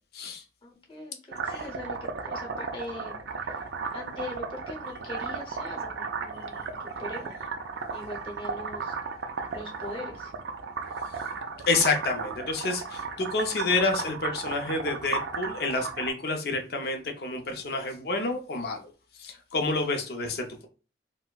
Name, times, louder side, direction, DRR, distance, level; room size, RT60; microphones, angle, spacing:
voice 1, 0.6-3.2 3.5-3.6 3.9-7.4 7.9-9.0 9.5-10.3, left 1 dB, 30° left, 0 dB, 0.8 m, -41 dB
sound 1, 1.3-16.1, right 5 dB, 70° right, 0.4 m, -35 dB
voice 2, 11.7-18.9 19.2-20.7, left 3 dB, 60° left, 4 dB, 0.5 m, -29 dB
4.1 x 2.1 x 2.3 m, 0.35 s
head